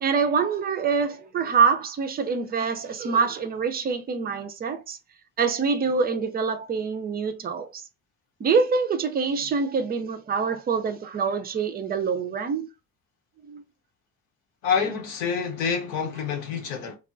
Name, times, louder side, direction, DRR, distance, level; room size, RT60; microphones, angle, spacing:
voice 1, 0.0-5.0 5.4-7.8 8.4-12.7 13.4-13.6, right 5 dB, 20° right, 0.4 m, -25 dB
voice 2, 14.6-17.0, left 6 dB, 70° left, 0.9 m, -27 dB
3.3 x 2.1 x 2.4 m
hypercardioid pair, 50°, 47 cm